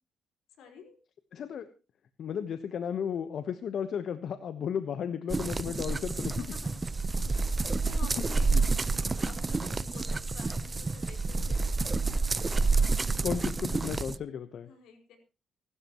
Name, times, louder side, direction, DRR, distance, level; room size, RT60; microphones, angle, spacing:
voice 1, 0.6-1.0 6.4-6.9 7.7-11.7 14.6-15.2, left 5 dB, 85° left, 4 dB, 4.8 m, -50 dB
voice 2, 1.3-1.7 2.2-6.4 8.5-8.6 13.2-14.7, left 8 dB, 65° left, 10 dB, 1.1 m, -34 dB
sound 1, 5.3-14.2, right 3 dB, 25° right, 0.8 m, -29 dB
25.0 x 12.5 x 3.1 m, 0.32 s
cardioid pair, 90°, 0 cm